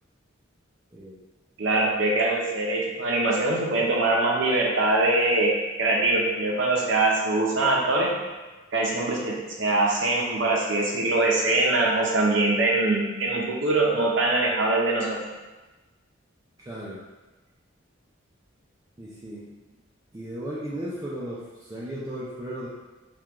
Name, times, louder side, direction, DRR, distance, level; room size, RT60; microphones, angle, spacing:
voice 1, 1.6-5.5 5.8-8.1 8.7-15.2, right 2 dB, 65° right, -2 dB, 0.6 m, -23 dB
voice 2, 16.6-17.0 19.0-19.5 20.1-22.7, right 1 dB, 20° right, -7 dB, 0.4 m, -35 dB
3.4 x 2.3 x 2.9 m, 1.2 s
head